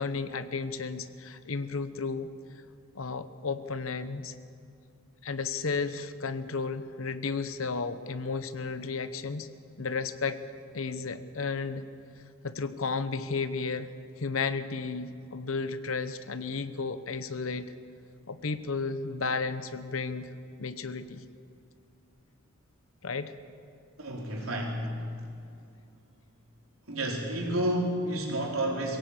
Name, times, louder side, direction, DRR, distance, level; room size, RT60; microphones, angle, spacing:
voice 1, 0.0-2.3 2.9-4.3 5.2-9.5 9.8-10.4 10.7-11.8 12.4-13.9 14.2-17.7 18.3-20.3 20.6-21.2 23.0-23.3, left 4 dB, 75° left, 12 dB, 0.9 m, -33 dB
voice 2, 24.0-24.9 26.9-29.0, right 1 dB, 90° right, -1 dB, 4.3 m, -30 dB
21.5 x 17.0 x 8.3 m, 2.5 s
head